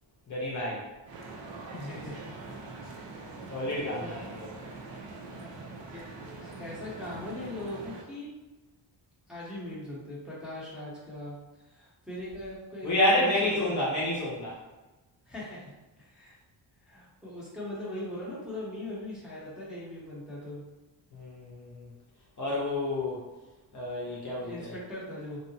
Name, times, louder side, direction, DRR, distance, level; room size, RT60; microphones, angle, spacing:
voice 1, 0.3-0.9 3.5-4.5 12.8-14.6 21.1-21.9 22.4-23.2 23.7-24.7, left 1 dB, 40° left, -5 dB, 0.7 m, -29 dB
sound 1, 1.0-8.0, right 3 dB, 75° right, 0.6 m, -43 dB
voice 2, 1.7-2.5 3.8-4.2 5.9-6.0 6.4-8.3 9.3-13.8 15.3-16.4 16.8-20.6 24.0-25.4, left 1 dB, ahead, -8 dB, 0.8 m, -40 dB
2.8 x 2.1 x 2.7 m, 1.1 s
wide cardioid pair, 120°, 45 cm